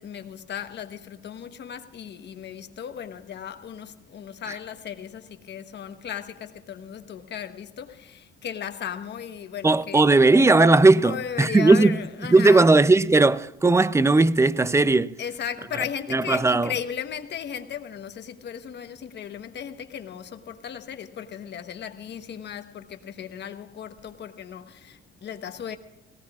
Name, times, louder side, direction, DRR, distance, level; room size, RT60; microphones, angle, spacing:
voice 1, 0.0-10.1 11.0-12.8 15.2-25.8, left 8 dB, 60° left, 1.2 m, -36 dB
voice 2, 9.6-12.0 12.3-15.2 16.1-16.7, right 3 dB, 15° right, 0.5 m, -17 dB
18.5 x 18.5 x 2.5 m
cardioid pair, 90°, 20 cm